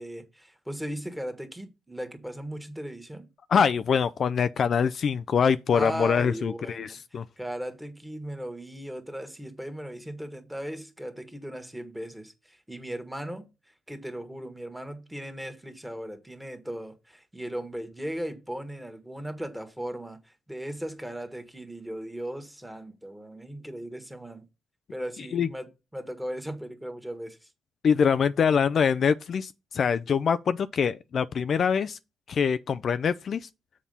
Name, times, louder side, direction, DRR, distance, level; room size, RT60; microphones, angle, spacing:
voice 1, 0.0-3.3 5.7-13.5 13.9-24.4 24.9-27.5, right 1 dB, 5° right, 1.5 m, -37 dB
voice 2, 3.5-7.2 25.3-25.5 27.8-32.0 32.3-33.5, left 6 dB, 55° left, 0.3 m, -24 dB
7.2 x 4.2 x 5.5 m
cardioid pair, 90°, 0 cm